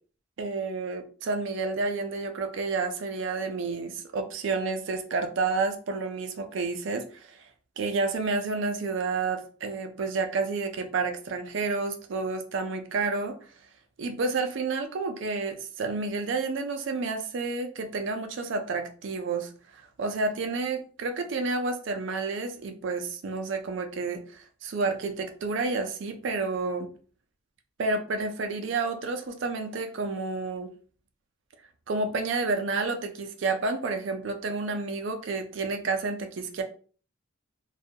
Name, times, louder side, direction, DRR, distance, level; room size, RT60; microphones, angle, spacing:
voice 1, 0.4-7.4 7.8-13.5 14.0-26.9 27.8-30.7 31.9-36.6, right 3 dB, 65° right, 6 dB, 0.4 m, -30 dB
2.3 x 2.2 x 2.7 m, 0.41 s
head